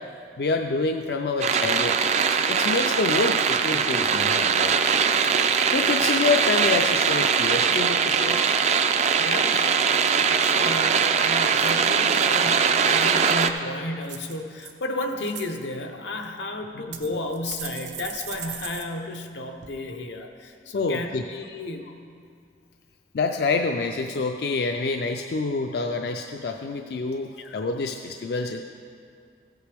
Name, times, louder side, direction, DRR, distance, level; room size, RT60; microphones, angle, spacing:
voice 1, 0.4-2.0 2.5-4.8 5.7-8.6 16.7-16.8 20.7-21.2 23.1-28.6, left 3 dB, 65° left, 4 dB, 0.4 m, -27 dB
sound 1, 1.4-13.5, right 6 dB, 40° right, 0.4 m, -21 dB
sound 2, 4.7-5.1 5.5-6.1 6.6-6.9 11.4-12.4 12.9-13.5 14.0-14.7 15.1-15.5 16.2-16.3 16.9-18.9 19.1-19.2 19.6-19.7, right 9 dB, 90° right, 0.8 m, -39 dB
voice 2, 9.2-9.7 10.3-22.0 27.4-27.6, left 2 dB, 90° left, 4 dB, 0.8 m, -33 dB
14.0 x 8.1 x 3.4 m, 2.3 s
head